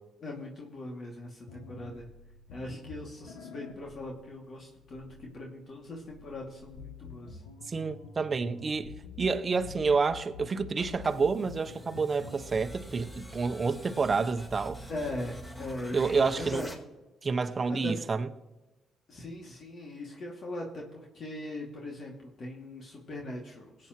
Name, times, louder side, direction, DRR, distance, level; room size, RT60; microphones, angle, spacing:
voice 1, 0.2-2.1 2.5-7.4 14.9-16.7 17.7-17.9 19.1-23.9, left 1 dB, 55° left, 2.5 m, -40 dB
sound 1, 1.5-12.8, left 5 dB, 85° left, 1.1 m, -48 dB
voice 2, 7.7-8.9 9.2-14.8 15.9-16.6 17.2-18.3, right 4 dB, 40° right, 0.9 m, -29 dB
sound 2, 10.5-16.7, equal, 20° left, 3.8 m, -45 dB
20.5 x 8.8 x 3.1 m
hypercardioid pair, 50°, 0 cm